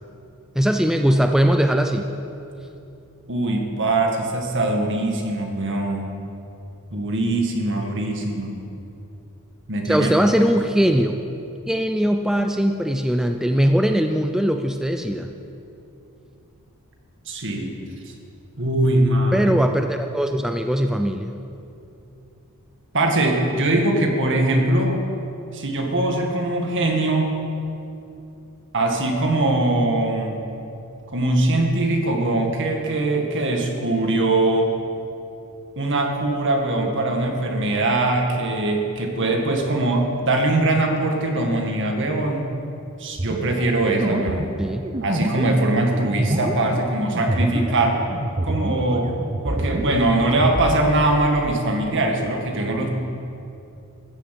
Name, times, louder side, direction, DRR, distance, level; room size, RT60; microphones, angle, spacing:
voice 1, 0.6-2.1 9.9-11.1 11.7-15.3 19.3-21.4 44.6-44.8, equal, ahead, 5 dB, 0.5 m, -20 dB
voice 2, 3.3-6.1 6.9-8.5 9.7-10.1 17.3-17.8 18.1-18.2 18.6-19.5 22.9-25.0 25.5-27.3 28.7-30.4 31.1-34.7 35.8-42.5 43.0-44.5 45.0-48.0 48.4-49.1 49.4-52.9, right 2 dB, 55° right, 2 dB, 2.0 m, -21 dB
sound 1, 43.2-48.9 49.2-50.8, right 1 dB, 25° right, 0.9 m, -26 dB
14.0 x 9.6 x 8.4 m, 2.7 s
head